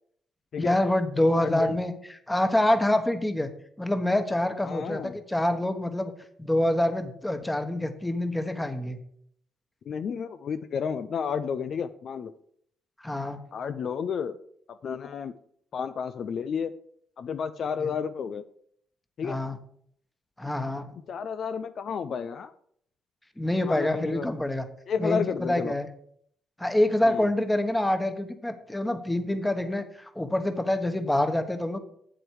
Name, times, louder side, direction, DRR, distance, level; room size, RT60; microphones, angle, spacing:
voice 1, 0.6-3.5 3.8-6.1 6.4-9.0 13.0-13.4 17.6-17.9 19.2-19.6 20.4-20.9 23.4-24.7 25.0-25.9 26.6-31.8, left 1 dB, 10° left, 8 dB, 1.2 m, -26 dB
voice 2, 1.3-1.8 4.6-5.2 9.9-12.3 13.5-14.4 14.7-15.3 15.7-16.7 17.2-18.4 19.2-19.4 21.1-22.5 23.7-24.3 24.9-25.7 27.0-27.3, left 6 dB, 60° left, 10 dB, 0.5 m, -31 dB
7.9 x 7.9 x 4.8 m, 0.66 s
supercardioid pair, 70°, 0 cm